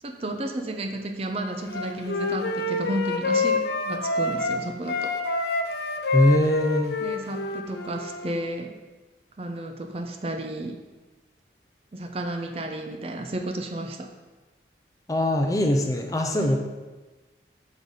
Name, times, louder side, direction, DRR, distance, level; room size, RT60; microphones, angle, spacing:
voice 1, 0.0-5.1 7.0-8.7 9.4-10.8 11.9-14.1 16.3-16.6, right 1 dB, 35° right, 5 dB, 0.5 m, -32 dB
Wind instrument woodwind instrument, 1.7-4.6 4.9-8.4, left 3 dB, 70° left, 0.6 m, -27 dB
voice 2, 6.1-7.0 15.1-16.6, equal, 20° left, 3 dB, 0.5 m, -22 dB
6.4 x 5.2 x 4.0 m, 1.2 s
head